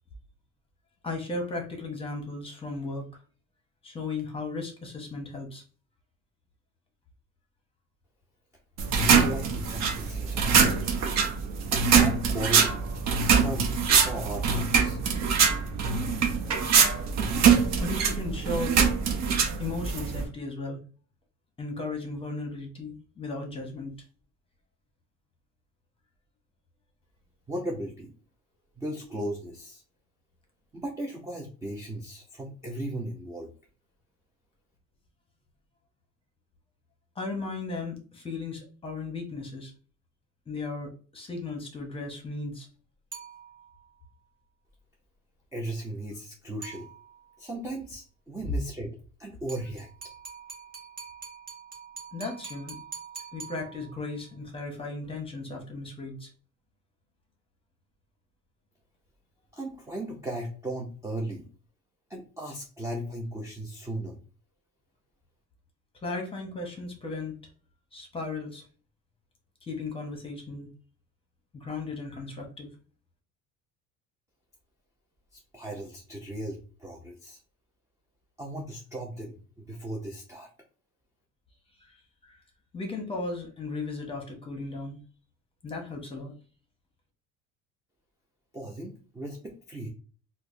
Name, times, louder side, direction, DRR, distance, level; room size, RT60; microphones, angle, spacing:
voice 1, 1.0-3.1 3.8-5.6 17.8-18.7 19.6-20.8 21.6-23.9 37.2-39.7 40.5-42.7 52.1-52.8 53.3-56.3 66.0-67.4 67.9-68.6 69.6-70.7 71.5-72.7 81.8-82.0 82.2-82.4 82.7-85.0 85.6-86.3, left 3 dB, 15° left, 3 dB, 0.8 m, -36 dB
sound 1, 8.8-20.2, right 6 dB, 55° right, 0.7 m, -23 dB
voice 2, 9.0-10.6 11.7-12.8 13.2-13.7 14.0-15.0 27.5-28.1 28.8-29.8 30.7-33.5 45.5-46.9 47.4-49.9 59.5-61.5 62.1-64.2 75.3-77.4 78.4-80.5 88.5-89.9, right 1 dB, 10° right, 0 dB, 0.4 m, -36 dB
sound 2, 43.1-43.9 46.6-47.4 49.5-54.2, right 5 dB, 30° right, 0.9 m, -44 dB
4.5 x 2.0 x 2.5 m, 0.38 s
cardioid pair, 150°, 32 cm